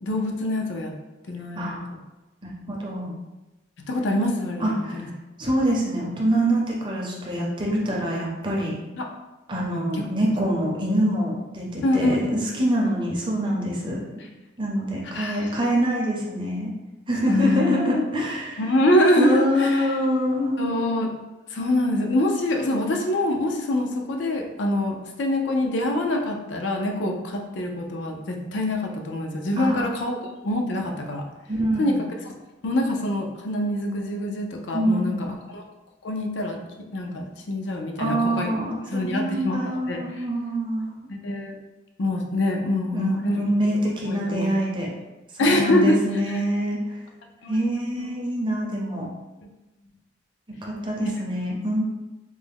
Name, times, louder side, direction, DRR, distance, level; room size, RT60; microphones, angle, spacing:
voice 1, 0.0-0.9 1.3-1.8 3.9-5.1 9.0-9.1 9.7-10.1 11.8-12.4 15.1-15.5 17.3-17.8 18.6-19.9 20.6-21.1 21.5-30.2 30.4-31.2 31.8-32.1 32.6-35.6 36.0-36.6 36.9-38.5 38.9-39.6 39.9-40.2 41.1-41.6 42.0-43.4 44.0-44.5 45.4-46.0 47.4-48.1, left 1 dB, 75° left, 2 dB, 0.5 m, -25 dB
voice 2, 2.4-3.1 4.6-5.1 5.4-8.8 9.5-14.0 14.6-16.7 17.1-18.6 19.2-20.6 29.6-29.9 31.5-32.0 34.7-35.3 38.0-40.9 42.9-44.9 45.3-46.8 47.5-49.1 50.6-51.8, equal, 25° right, -2 dB, 0.6 m, -25 dB
3.3 x 2.0 x 3.4 m, 1.1 s
head